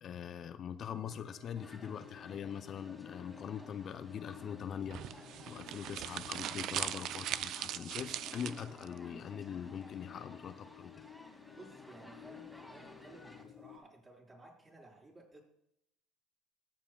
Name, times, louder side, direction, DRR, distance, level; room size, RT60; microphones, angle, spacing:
voice 1, 0.0-11.1, left 8 dB, 50° left, 11 dB, 0.6 m, -43 dB
sound 1, 0.8-13.8, left 10 dB, 80° left, 2.4 m, -55 dB
sound 2, 1.5-13.4, left 1 dB, ahead, 2.4 m, -55 dB
sound 3, 4.9-8.9, right 12 dB, 60° right, 0.4 m, -40 dB
voice 2, 11.5-15.4, right 2 dB, 30° right, -3 dB, 4.8 m, -56 dB
21.0 x 7.4 x 2.3 m, 0.74 s
hypercardioid pair, 70°, 0 cm